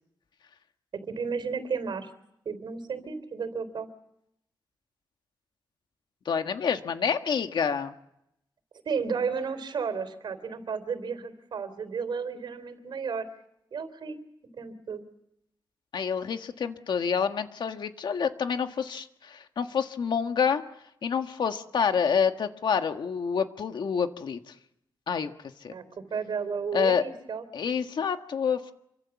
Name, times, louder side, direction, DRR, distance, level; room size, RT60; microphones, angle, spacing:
voice 1, 1.1-2.1 2.4-3.9 8.8-13.3 13.7-14.2 14.6-15.0 25.7-27.4, right 5 dB, 75° right, 11 dB, 3.5 m, -33 dB
voice 2, 6.2-7.9 15.9-20.6 21.0-24.5 25.1-25.3 25.6-25.7 26.7-27.0 27.5-28.7, left 6 dB, 70° left, 7 dB, 1.7 m, -28 dB
27.5 x 24.5 x 7.2 m, 0.79 s
wide cardioid pair, 175°, 8 cm